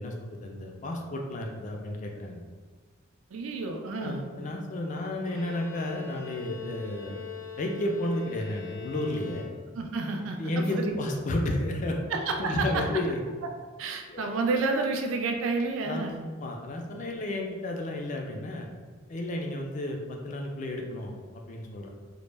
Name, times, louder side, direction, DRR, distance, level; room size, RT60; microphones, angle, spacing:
voice 1, 0.0-2.4 4.0-7.2 7.6-9.4 10.4-12.0 12.4-13.2 14.1-14.3 15.8-18.7 19.1-21.9, left 1 dB, 40° left, 1 dB, 0.3 m, -32 dB
voice 2, 3.3-4.2 9.7-11.0 12.1-12.8 13.8-16.2, right 3 dB, 75° right, 3 dB, 0.3 m, -30 dB
Bowed string instrument, 5.2-10.0, left 6 dB, 80° left, 0.6 m, -42 dB
2.1 x 2.0 x 3.2 m, 1.5 s
head